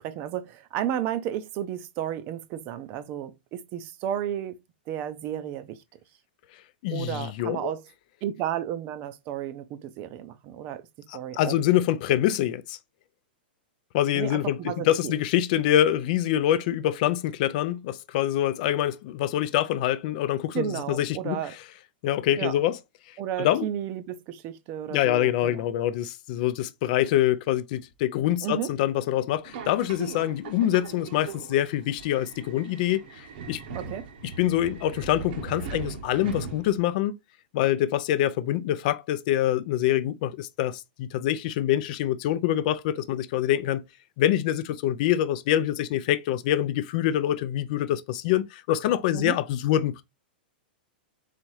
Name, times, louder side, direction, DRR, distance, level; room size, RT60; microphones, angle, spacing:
voice 1, 0.0-4.6 4.9-5.8 6.9-7.8 8.2-10.8 11.1-11.5 14.1-15.1 20.5-21.5 22.4-22.5 23.2-25.6 28.4-28.7 33.7-34.1 49.1-49.4, right 11 dB, 40° right, 0.6 m, -32 dB
voice 2, 6.8-7.7 11.1-12.8 13.9-14.6 14.9-21.4 22.0-22.8 23.4-23.7 24.9-33.6 34.2-37.2 37.5-43.8 44.2-50.0, left 12 dB, 50° left, 0.4 m, -25 dB
Subway metro underground, 29.4-37.0, right 5 dB, 60° right, 0.9 m, -40 dB
4.2 x 3.4 x 3.1 m
hypercardioid pair, 135°, 6 cm